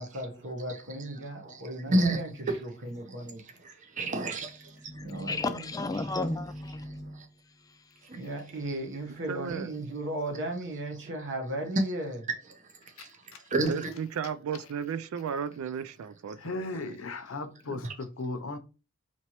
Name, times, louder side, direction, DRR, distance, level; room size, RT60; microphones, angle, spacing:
voice 1, 0.0-3.4 5.0-5.7 6.0-6.1 8.1-12.2, right 1 dB, 55° right, 1.0 m, -36 dB
voice 2, 1.9-2.2 2.5-2.6 3.6-5.1 7.1-7.3 8.1-8.2 13.0-13.1 13.5-13.9 17.8-17.9, right 2 dB, 35° right, 0.7 m, -29 dB
voice 3, 4.6-8.1, left 2 dB, 15° left, 0.4 m, -35 dB
voice 4, 9.3-9.7 13.7-16.9 17.7-17.8, right 7 dB, 80° right, 0.3 m, -35 dB
voice 5, 16.4-18.6, left 2 dB, 70° left, 0.6 m, -36 dB
4.3 x 2.9 x 2.9 m
head